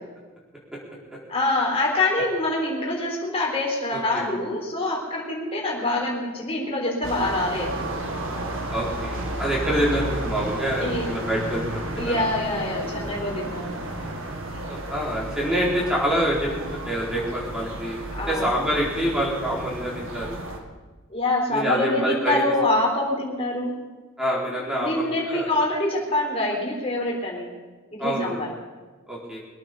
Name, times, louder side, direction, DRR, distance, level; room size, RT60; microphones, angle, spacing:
voice 1, 1.3-7.8 10.8-11.1 12.0-13.8 18.2-18.6 21.1-23.8 24.8-27.5 27.9-28.5, left 2 dB, 25° left, -2 dB, 3.9 m, -25 dB
voice 2, 3.9-4.2 8.7-12.2 14.7-18.0 18.3-20.4 21.5-22.5 24.2-25.5 28.0-28.4 29.1-29.4, equal, 5° right, -5 dB, 4.0 m, -26 dB
sound 1, 7.0-20.6, right 1 dB, 60° right, 1.9 m, -32 dB
22.5 x 9.0 x 6.7 m, 1.3 s
head